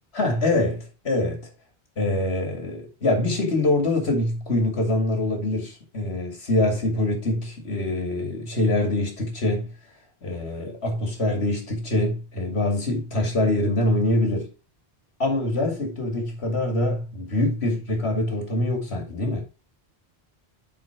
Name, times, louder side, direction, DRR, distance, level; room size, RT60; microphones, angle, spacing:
voice 1, 0.1-1.4 2.0-9.7 10.2-14.5 15.2-19.4, left 1 dB, 75° left, 2.7 m, -24 dB
8.0 x 4.7 x 4.9 m
omnidirectional pair, 1.1 m